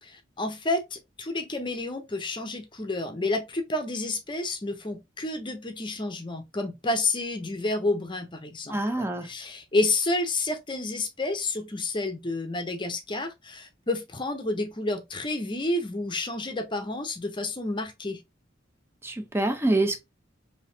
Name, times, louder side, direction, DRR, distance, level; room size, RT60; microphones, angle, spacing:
voice 1, 0.0-18.2, left 2 dB, 25° left, 0.7 m, -30 dB
voice 2, 8.7-9.3 19.0-20.0, right 2 dB, 15° right, 0.6 m, -26 dB
3.9 x 2.8 x 2.7 m
head